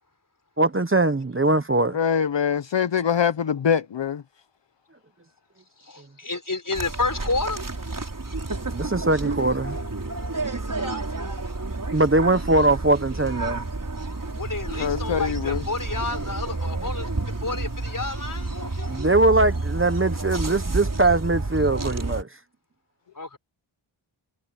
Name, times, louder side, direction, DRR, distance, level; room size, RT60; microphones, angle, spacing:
voice 1, 0.6-2.0 8.7-9.8 11.9-13.7 18.9-22.3, right 2 dB, 25° right, 1.0 m, -21 dB
voice 2, 1.9-4.2 14.8-15.6, left 7 dB, 65° left, 0.8 m, -23 dB
voice 3, 5.8-7.6 10.7-11.1 14.3-19.0 23.1-23.4, left 3 dB, 40° left, 4.2 m, -30 dB
sound 1, 6.7-22.2, right 2 dB, 40° right, 4.6 m, -30 dB
wide cardioid pair, 75°, 47 cm